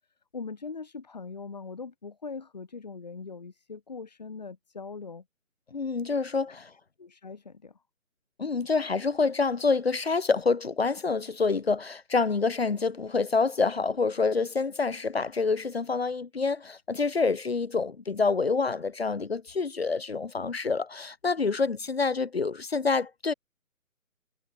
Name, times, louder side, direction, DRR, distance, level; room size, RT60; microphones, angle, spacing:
voice 1, 0.3-5.2 7.0-7.8, left 4 dB, 30° left, 1.7 m, -41 dB
voice 2, 5.7-6.7 8.4-23.3, left 4 dB, 45° left, 1.4 m, -27 dB
hypercardioid pair, 180°, 43 cm